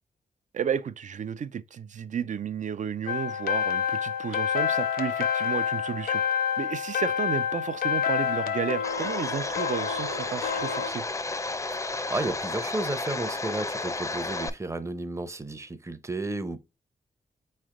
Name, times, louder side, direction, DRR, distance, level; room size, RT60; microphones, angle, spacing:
voice 1, 0.5-6.2 6.6-11.0, right 8 dB, 55° right, 0.4 m, -32 dB
sound 1, 3.1-10.9, left 8 dB, 75° left, 0.6 m, -28 dB
Domestic sounds home sounds, 8.8-14.5, left 3 dB, 20° left, 0.5 m, -32 dB
voice 2, 12.1-16.6, right 2 dB, 20° right, 0.7 m, -32 dB
4.0 x 3.3 x 3.7 m
cardioid pair, 65°, 15 cm